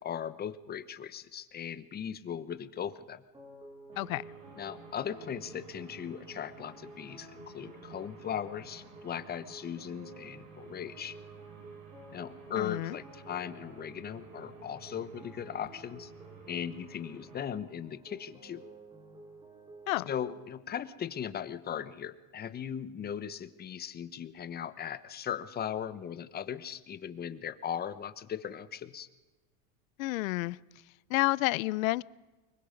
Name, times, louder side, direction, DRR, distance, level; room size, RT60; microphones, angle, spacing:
voice 1, 0.0-3.2 4.6-11.1 12.1-16.1 16.5-18.6 20.1-29.1, left 8 dB, 25° left, 13 dB, 1.1 m, -38 dB
sound 1, 3.3-20.5, right 2 dB, 10° right, 2.2 m, -52 dB
sound 2, 3.9-17.4, right 5 dB, 55° right, 5.8 m, -54 dB
voice 2, 12.6-13.0 19.9-20.1 30.0-30.6 31.1-32.0, left 20 dB, 85° left, 22 dB, 0.7 m, -29 dB
24.5 x 22.0 x 5.3 m, 1.2 s
supercardioid pair, 135°, 40 cm